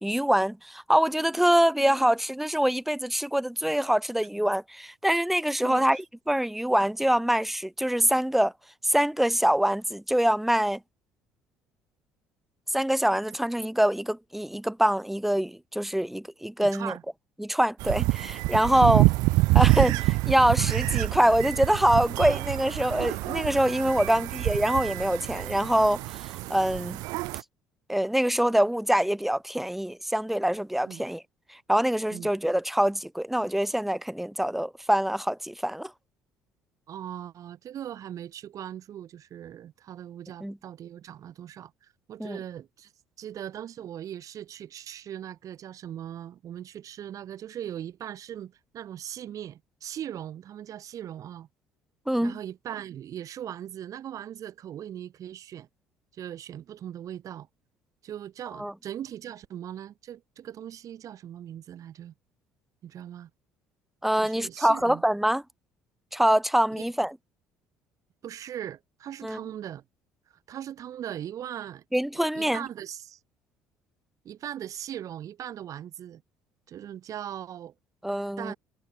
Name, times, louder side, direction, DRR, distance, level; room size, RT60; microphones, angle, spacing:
voice 1, 0.0-8.5 8.8-10.8 12.7-16.9 17.4-19.1 19.5-27.0 27.9-31.2 31.5-35.9 40.4-40.6 42.2-42.4 52.1-52.4 58.6-58.7 64.0-65.4 66.1-67.2 69.2-69.4 71.9-72.6 78.0-78.5, right 1 dB, 5° right, 0.5 m, -24 dB
voice 2, 16.6-17.0 23.9-24.3 30.8-31.0 32.1-32.3 36.9-42.9 43.2-51.5 52.2-55.7 56.1-57.5 58.0-62.1 62.8-63.3 64.1-65.0 66.7-66.9 68.2-69.8 70.5-71.8 72.1-73.2 74.2-76.2 76.7-77.7 78.4-78.6, right 10 dB, 55° right, 4.0 m, -39 dB
sound 1, 17.8-27.4, right 22 dB, 75° right, 0.4 m, -26 dB
supercardioid pair, 75°, 7 cm